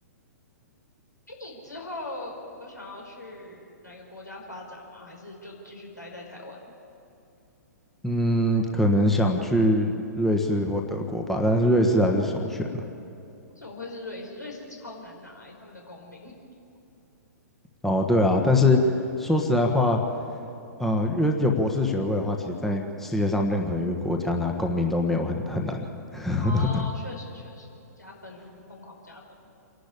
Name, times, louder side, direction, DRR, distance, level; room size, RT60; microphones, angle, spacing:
voice 1, 1.3-6.6 13.5-16.4 26.4-27.7 28.0-29.2, left 2 dB, 85° left, 0 dB, 5.0 m, -41 dB
voice 2, 8.0-12.8 17.8-18.8 19.2-20.0 20.8-25.8 26.1-26.7, left 1 dB, 5° left, 1 dB, 1.4 m, -23 dB
27.5 x 11.5 x 8.5 m, 2.7 s
figure-of-eight pair, 115°, 9 cm